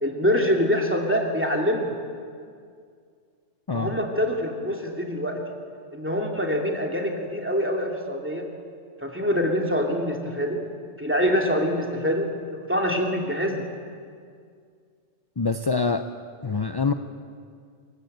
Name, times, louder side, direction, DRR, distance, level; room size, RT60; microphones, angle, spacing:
voice 1, 0.0-1.9 3.7-5.4 5.9-8.4 9.0-10.6 11.0-13.7, equal, 10° right, 0 dB, 2.6 m, -25 dB
voice 2, 15.4-16.0 16.4-16.9, left 4 dB, 30° left, 7 dB, 0.4 m, -25 dB
25.5 x 15.0 x 8.0 m, 2.2 s
omnidirectional pair, 1.3 m